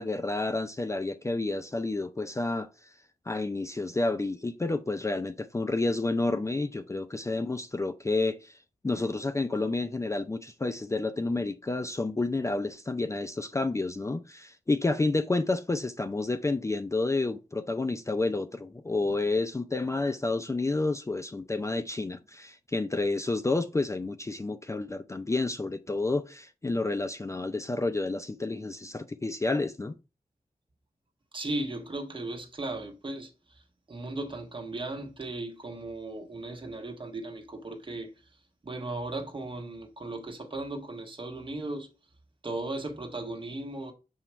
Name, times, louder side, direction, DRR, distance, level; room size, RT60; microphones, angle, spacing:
voice 1, 0.0-3.0 3.3-29.9, left 2 dB, 20° left, 0.4 m, -30 dB
voice 2, 31.3-41.9 42.4-43.9, right 2 dB, 35° right, 1.4 m, -37 dB
7.1 x 3.0 x 4.4 m
wide cardioid pair, 110°, 14 cm